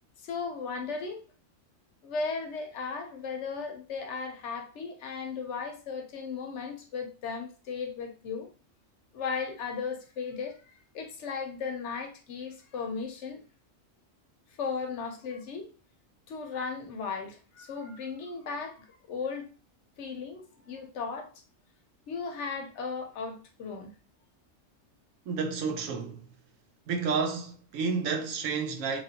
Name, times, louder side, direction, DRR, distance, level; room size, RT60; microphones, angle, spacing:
voice 1, 0.2-1.2 2.0-8.5 9.1-13.4 14.6-15.7 16.3-19.5 20.0-21.3 22.1-23.9, left 5 dB, 65° left, 0.9 m, -36 dB
voice 2, 25.3-26.3 26.9-29.0, right 5 dB, 85° right, 1.0 m, -30 dB
3.0 x 2.4 x 2.7 m
omnidirectional pair, 1.4 m